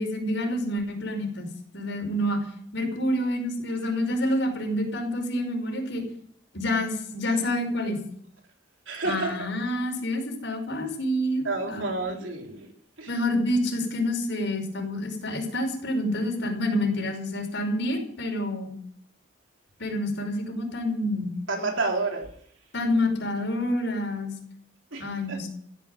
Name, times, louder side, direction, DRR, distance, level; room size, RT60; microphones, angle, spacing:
voice 1, 0.0-2.4 2.7-6.0 6.5-8.0 9.0-11.9 13.1-18.7 19.8-21.4 22.7-24.3 25.0-25.5, left 1 dB, 65° left, 3 dB, 5.4 m, -28 dB
voice 2, 8.9-9.3 11.5-12.6 13.0-13.1 21.5-22.2 24.9-25.0 25.3-25.4, right 3 dB, 80° right, 2 dB, 3.5 m, -29 dB
15.5 x 10.0 x 9.1 m, 0.65 s
head